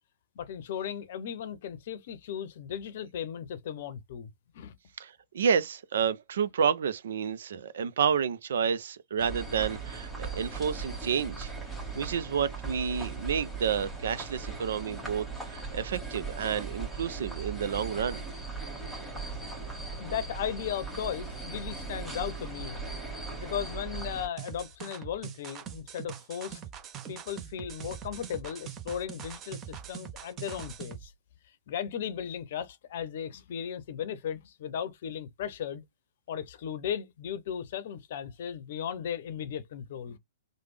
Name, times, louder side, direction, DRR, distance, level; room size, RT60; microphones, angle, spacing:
voice 1, 0.4-4.8 20.0-22.8 23.4-26.6 27.1-31.1 31.7-35.8 36.3-40.2, left 9 dB, 55° left, 0.7 m, -36 dB
voice 2, 5.0-11.5 12.0-18.2, right 7 dB, 65° right, 0.5 m, -30 dB
sound 1, 9.2-24.3, right 4 dB, 5° right, 1.6 m, -38 dB
sound 2, 24.4-31.1, right 9 dB, 25° right, 0.7 m, -43 dB
3.3 x 2.2 x 3.2 m
hypercardioid pair, 120°, 0 cm